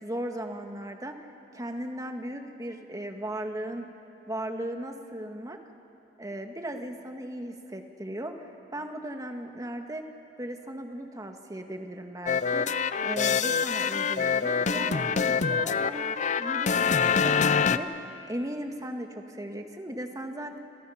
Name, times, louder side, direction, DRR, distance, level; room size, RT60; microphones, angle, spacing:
voice 1, 0.0-1.2 1.5-3.9 4.3-5.6 6.2-8.5 8.7-10.0 10.4-12.7 13.0-20.6, right 1 dB, 20° right, 4 dB, 1.8 m, -37 dB
sound 1, 12.3-17.8, left 6 dB, 45° left, 0.6 m, -25 dB
29.0 x 28.5 x 5.8 m, 2.7 s
head